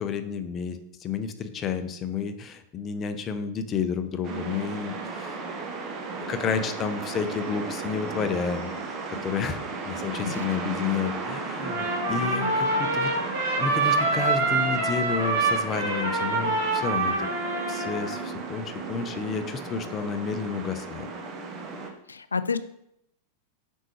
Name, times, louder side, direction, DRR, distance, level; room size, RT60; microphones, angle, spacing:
voice 1, 0.0-5.4 6.3-9.6 9.8-13.1 13.6-17.3 17.7-21.1, left 6 dB, 25° left, 9 dB, 0.7 m, -31 dB
sound 1, 4.2-21.9, right 4 dB, 30° right, 1.1 m, -35 dB
Trumpet, 11.6-18.2, right 3 dB, 55° right, 2.8 m, -26 dB
voice 2, 12.2-12.5 22.1-22.6, left 5 dB, 75° left, 14 dB, 0.4 m, -30 dB
7.5 x 5.4 x 3.1 m, 0.76 s
figure-of-eight pair, 90°, 0 cm